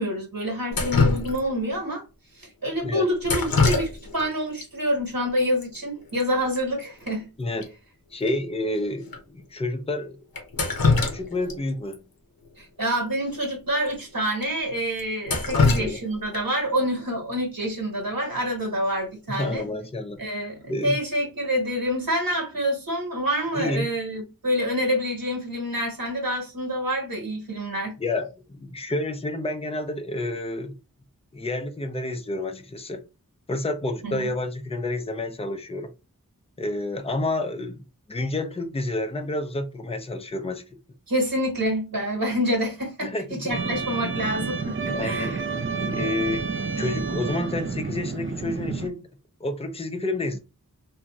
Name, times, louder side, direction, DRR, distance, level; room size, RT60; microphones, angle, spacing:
voice 1, 0.0-2.0 2.3-7.3 12.6-19.6 20.2-28.0 34.0-34.3 41.1-45.4, equal, 75° right, 1.4 m, -27 dB
Drip, 0.7-1.7 3.2-4.3 4.6-4.7 5.6-5.7 6.0-6.2 6.5-6.6 7.1-7.2 7.6-7.7 8.3-8.4 9.1-9.2 10.3-11.6 11.9-12.0 13.3-13.4 13.9-14.0 14.4-14.5 15.0-16.6 18.6-18.9 19.3-19.7, left 3 dB, 85° left, 0.7 m, -24 dB
voice 2, 7.4-7.7 8.1-10.2 11.0-12.0 15.5-16.0 19.4-20.2 20.7-21.0 23.5-23.9 28.0-30.8 31.3-33.0 33.5-35.9 36.6-40.6 43.0-43.6 44.9-45.4 45.8-49.0 49.4-50.4, left 2 dB, 15° left, 0.5 m, -29 dB
sound 1, 43.5-48.9, right 4 dB, 35° right, 0.4 m, -29 dB
2.9 x 2.6 x 2.3 m
wide cardioid pair, 50°, 34 cm